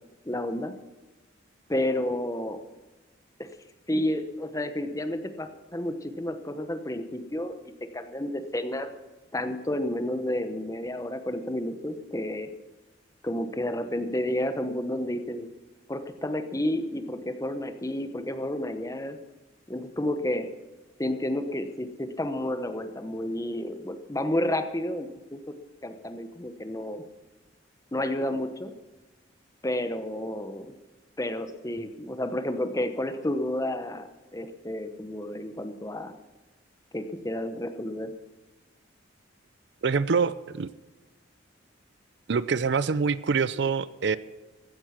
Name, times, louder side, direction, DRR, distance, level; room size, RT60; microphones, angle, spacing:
voice 1, 0.2-0.7 1.7-2.6 3.4-3.5 3.9-7.6 7.9-8.9 9.3-12.5 13.2-15.5 15.9-19.2 19.7-20.5 21.0-25.4 25.8-27.0 27.9-28.7 29.6-30.7 31.2-36.1 36.9-38.1, left 1 dB, 15° left, 8 dB, 0.9 m, -31 dB
voice 2, 39.8-40.7 42.3-44.2, right 5 dB, 60° right, 17 dB, 0.5 m, -25 dB
15.0 x 9.8 x 5.9 m, 1.2 s
head